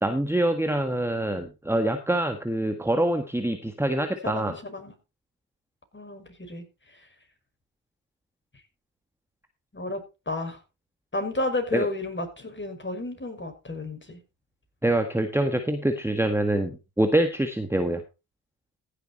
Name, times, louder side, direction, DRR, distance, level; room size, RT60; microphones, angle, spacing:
voice 1, 0.0-4.6 11.7-11.9 14.8-18.0, right 1 dB, 5° right, 7 dB, 1.6 m, -25 dB
voice 2, 4.2-4.9 5.9-6.6 9.7-10.0 10.3-10.6 11.1-14.2, left 2 dB, 20° left, 5 dB, 5.8 m, -32 dB
15.5 x 7.1 x 4.3 m, 0.29 s
hypercardioid pair, 45°, 49 cm